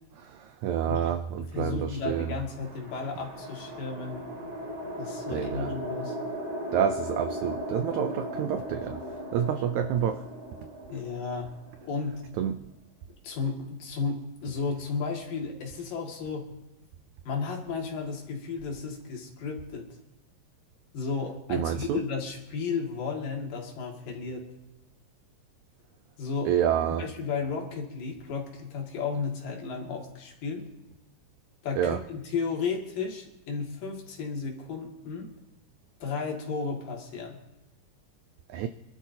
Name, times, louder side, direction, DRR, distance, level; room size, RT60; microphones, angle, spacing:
voice 1, 0.2-2.3 5.3-5.7 6.7-9.0 9.3-10.2 12.4-12.6 21.5-22.0 26.4-27.1 31.8-32.0 38.5-38.7, right 9 dB, 85° right, 9 dB, 1.7 m, -28 dB
voice 2, 1.5-4.2 5.0-6.2 10.9-11.5 11.8-12.2 13.2-16.5 17.3-19.9 20.9-24.5 26.2-26.5 27.0-30.6 31.6-35.3 36.0-37.4, left 5 dB, 75° left, 0 dB, 3.8 m, -33 dB
sound 1, 1.9-12.4, equal, 35° right, 4.4 m, -37 dB
26.0 x 12.0 x 2.8 m, 0.96 s
omnidirectional pair, 4.0 m